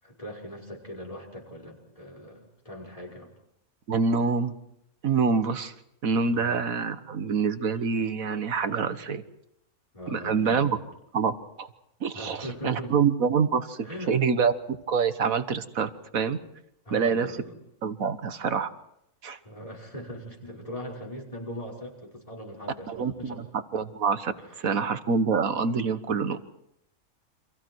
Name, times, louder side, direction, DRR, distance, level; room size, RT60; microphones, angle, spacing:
voice 1, 0.0-3.3 6.3-6.5 9.9-10.9 12.1-12.9 13.8-14.1 16.9-17.6 19.4-23.4 24.4-24.7, equal, 25° left, 0 dB, 5.4 m, -40 dB
voice 2, 3.9-4.5 5.0-5.7 6.0-9.2 10.1-10.8 11.1-11.7 12.0-16.4 16.9-17.3 17.8-18.7 19.2-19.4 22.9-23.4 23.7-24.3 24.6-26.4, right 5 dB, 70° right, 10 dB, 1.8 m, -26 dB
29.5 x 26.5 x 4.7 m, 0.78 s
omnidirectional pair, 1.5 m